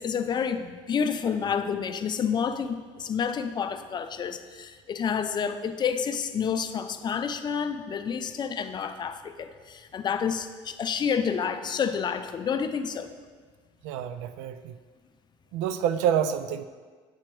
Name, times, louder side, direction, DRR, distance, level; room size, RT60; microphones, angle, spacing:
voice 1, 0.0-13.1, left 7 dB, 35° left, 9 dB, 0.4 m, -29 dB
voice 2, 13.8-14.7 15.5-16.6, right 9 dB, 80° right, 11 dB, 0.4 m, -27 dB
8.5 x 3.0 x 4.5 m, 1.5 s
supercardioid pair, 85°, 13 cm